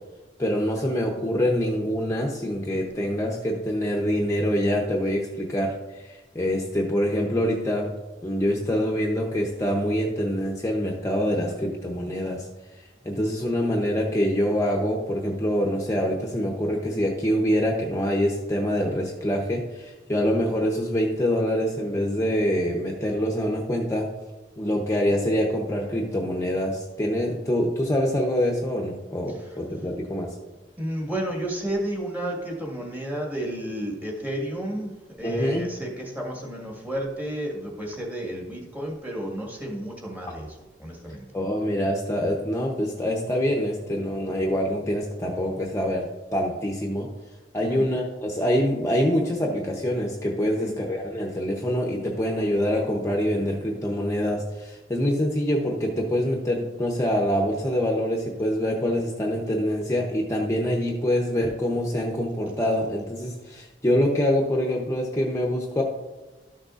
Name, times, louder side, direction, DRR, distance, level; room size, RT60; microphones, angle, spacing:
voice 1, 0.4-7.9 8.2-12.5 12.7-24.1 24.6-30.3 35.2-35.7 41.3-47.1 47.5-65.8, equal, 15° left, -1 dB, 0.7 m, -25 dB
voice 2, 30.8-34.9 35.2-40.5 40.8-41.3 47.6-47.8 50.4-50.7, right 1 dB, 10° right, -1 dB, 1.6 m, -31 dB
12.5 x 6.5 x 2.5 m, 1.2 s
head